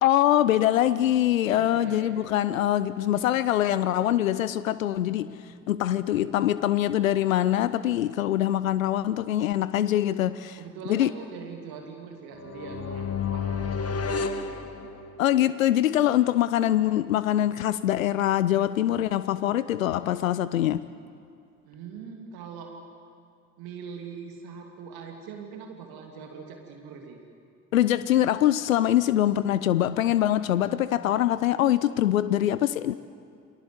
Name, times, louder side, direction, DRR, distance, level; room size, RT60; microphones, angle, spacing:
voice 1, 0.0-10.6 10.9-11.1 15.2-20.9 27.7-32.9, left 12 dB, 85° left, 16 dB, 0.6 m, -24 dB
voice 2, 1.7-2.3 5.9-6.3 10.6-15.1 21.6-22.7 23.6-27.2, right 6 dB, 65° right, 2 dB, 2.8 m, -42 dB
sound 1, 12.4-15.4, left 5 dB, 40° left, 1.9 m, -31 dB
29.5 x 22.5 x 8.1 m, 2.5 s
figure-of-eight pair, 45°, 39 cm